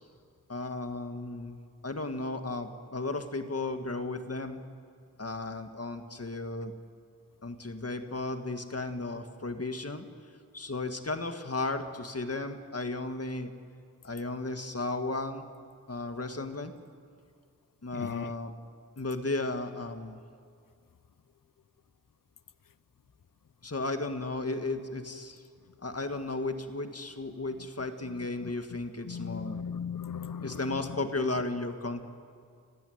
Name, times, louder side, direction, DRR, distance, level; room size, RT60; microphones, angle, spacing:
voice 1, 0.5-1.6 1.8-4.6 5.2-6.7 7.4-10.1 10.5-13.5 14.0-15.5 15.9-16.7 17.8-18.5 19.0-20.2 23.6-25.4 25.8-29.6 30.4-32.0, left 2 dB, 45° left, 7 dB, 1.9 m, -34 dB
voice 2, 17.9-18.3 27.6-27.7 28.0-28.5 29.0-31.0, left 7 dB, 75° left, 16 dB, 0.7 m, -38 dB
30.0 x 15.5 x 9.5 m, 2.3 s
wide cardioid pair, 60°, 33 cm